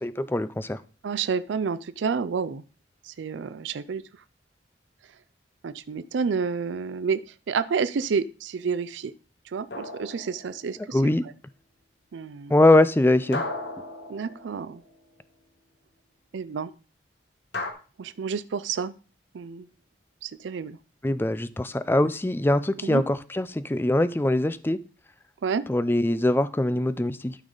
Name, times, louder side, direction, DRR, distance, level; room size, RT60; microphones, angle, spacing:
voice 1, 0.0-0.8 10.9-11.2 12.5-13.4 21.0-24.8 25.7-27.4, left 1 dB, 10° left, 15 dB, 0.4 m, -22 dB
voice 2, 1.0-2.6 3.0-4.0 5.6-9.1 9.5-11.1 12.1-12.5 14.1-14.8 16.3-16.7 18.0-19.0 19.3-19.7 20.2-20.8 22.8-23.0 25.4-25.6, right 5 dB, 80° right, 15 dB, 0.4 m, -29 dB
sound 1, 9.7-10.9 13.3-15.0 17.5-17.7, left 2 dB, 65° left, 1.3 m, -35 dB
12.0 x 5.5 x 3.9 m, 0.37 s
head